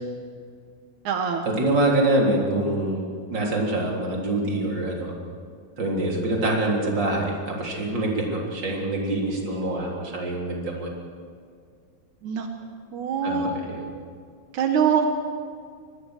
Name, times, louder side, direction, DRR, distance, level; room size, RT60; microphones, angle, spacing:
voice 1, 1.0-1.5 12.2-12.5 12.9-13.5 14.5-15.0, right 7 dB, 80° right, 4 dB, 1.7 m, -23 dB
voice 2, 1.6-5.1 5.8-10.9 13.2-13.8, right 2 dB, 25° right, -1 dB, 3.6 m, -25 dB
25.0 x 21.0 x 6.6 m, 2.2 s
omnidirectional pair, 5.6 m